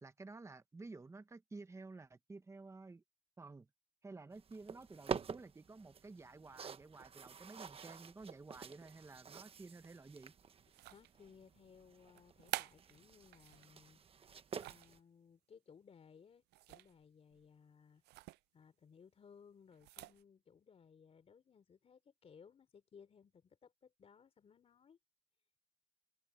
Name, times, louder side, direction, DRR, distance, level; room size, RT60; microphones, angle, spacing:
voice 1, 0.0-3.0 3.4-3.7 4.0-10.3, right 3 dB, 15° right, 1.3 m, -53 dB
sound 1, 4.3-15.0, right 6 dB, 35° right, 1.1 m, -49 dB
sound 2, 10.7-11.3 12.2-13.7 14.2-15.0 16.5-17.0 17.3-17.5 18.0-18.4 19.7-20.2, right 18 dB, 80° right, 0.5 m, -48 dB
voice 2, 10.9-14.3 14.6-18.0 18.5-25.0, left 6 dB, 35° left, 3.4 m, -62 dB
cardioid pair, 110°, 17 cm